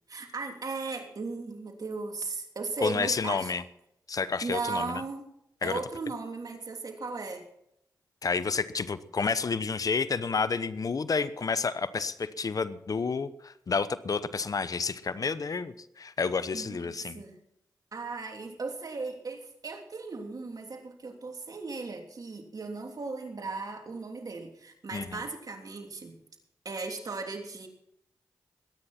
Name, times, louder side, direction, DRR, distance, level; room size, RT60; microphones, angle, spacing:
voice 1, 0.1-3.5 4.4-5.3 5.6-7.4 16.5-17.4 17.9-26.2 26.6-27.7, right 4 dB, 55° right, 3 dB, 3.1 m, -37 dB
voice 2, 2.8-3.6 4.1-5.0 5.6-5.8 8.2-17.2 24.9-25.2, left 5 dB, 55° left, 15 dB, 0.9 m, -30 dB
22.5 x 9.7 x 4.4 m, 0.76 s
cardioid pair, 45°, 7 cm